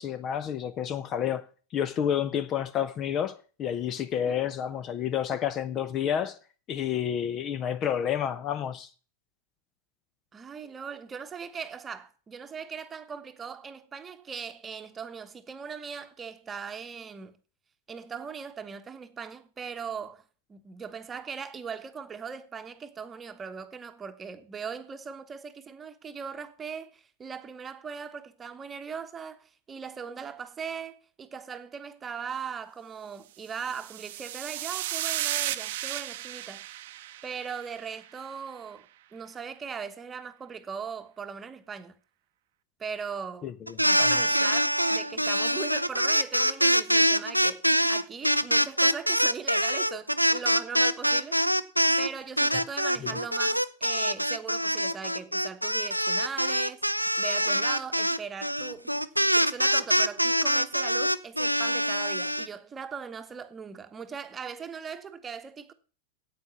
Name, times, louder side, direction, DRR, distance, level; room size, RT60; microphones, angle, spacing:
voice 1, 0.0-1.4 1.7-6.4 6.7-8.9 43.4-43.5 44.0-44.1, left 9 dB, 30° left, 0.8 m, -29 dB
voice 2, 10.3-17.4 17.9-20.2 20.5-36.6 37.2-38.9 39.1-42.0 42.8-43.5 43.8-47.6 47.9-51.4 52.0-56.8 57.2-59.0 59.3-65.7, right 6 dB, 20° right, 1.2 m, -39 dB
sound 1, 33.5-38.0, right 14 dB, 55° right, 0.7 m, -34 dB
sound 2, 43.7-52.1 52.4-62.5, equal, 90° right, 0.5 m, -24 dB
9.4 x 8.5 x 7.0 m
figure-of-eight pair, 90°, 0 cm